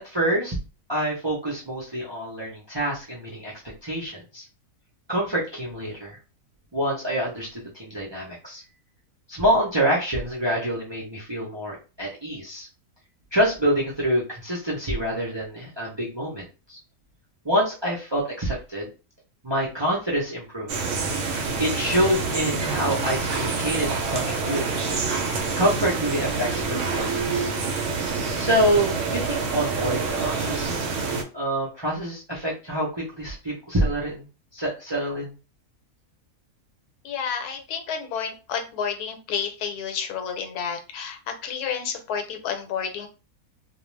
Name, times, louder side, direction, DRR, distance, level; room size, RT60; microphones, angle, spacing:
voice 1, 0.0-0.6 0.9-3.5 3.8-4.4 5.1-6.2 6.7-8.6 9.3-12.7 13.3-16.8 17.4-18.9 19.4-20.7 21.6-24.7 25.6-27.5 28.4-30.7 31.3-34.2 34.5-35.3, equal, 35° right, -5 dB, 0.4 m, -26 dB
sound 1, 20.7-31.2, right 4 dB, 65° right, 0.8 m, -27 dB
voice 2, 37.0-43.1, left 7 dB, 85° left, 6 dB, 1.1 m, -30 dB
2.4 x 2.2 x 3.1 m, 0.32 s
omnidirectional pair, 1.6 m